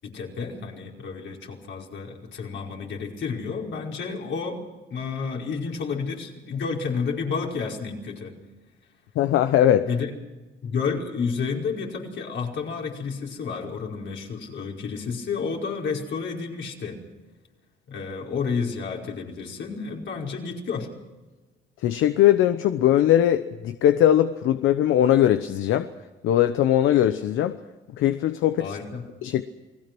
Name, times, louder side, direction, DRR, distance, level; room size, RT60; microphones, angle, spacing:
voice 1, 0.0-4.6 4.9-8.3 9.8-10.1 10.6-17.0 17.9-20.9 28.6-29.0, left 5 dB, 65° left, -1 dB, 5.2 m, -30 dB
voice 2, 9.2-9.9 21.8-25.9 26.2-27.6 28.0-28.8 29.2-29.4, left 11 dB, 85° left, 10 dB, 1.0 m, -20 dB
29.0 x 19.5 x 6.2 m, 1.2 s
cardioid pair, 90°, 20 cm